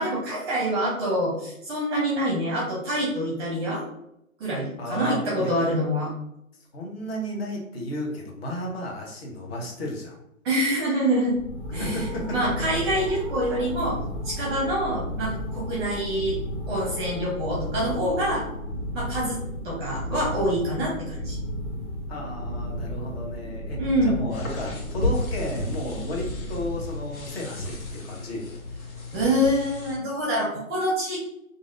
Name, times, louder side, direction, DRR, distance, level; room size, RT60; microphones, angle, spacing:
voice 1, 0.0-3.8 4.4-6.1 10.4-11.4 11.7-12.0 12.3-16.4 16.7-18.5 18.9-21.4 23.8-24.2 29.1-31.2, equal, 20° right, -4 dB, 0.7 m, -26 dB
voice 2, 4.8-5.5 6.7-10.2 11.7-12.4 20.8-20.9 22.1-28.5, equal, 45° left, -1 dB, 1.1 m, -33 dB
sound 1, 11.3-27.3, equal, 20° left, 1.0 m, -33 dB
sound 2, 24.3-30.0, left 2 dB, 85° left, 1.2 m, -34 dB
3.1 x 2.6 x 2.6 m, 0.80 s
hypercardioid pair, 145°, 42 cm